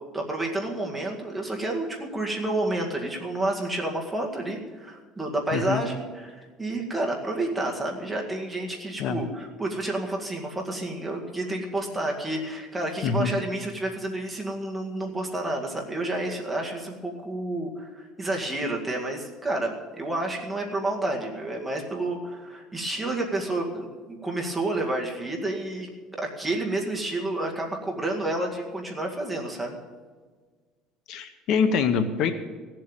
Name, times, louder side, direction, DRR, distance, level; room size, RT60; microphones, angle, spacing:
voice 1, 0.1-25.9 26.2-29.8, right 2 dB, 5° right, -1 dB, 2.0 m, -30 dB
voice 2, 5.5-5.8 9.0-9.2 13.0-13.3 31.1-32.3, left 6 dB, 55° left, 9 dB, 0.9 m, -24 dB
16.5 x 7.7 x 9.0 m, 1.5 s
cardioid pair, 160°, 0 cm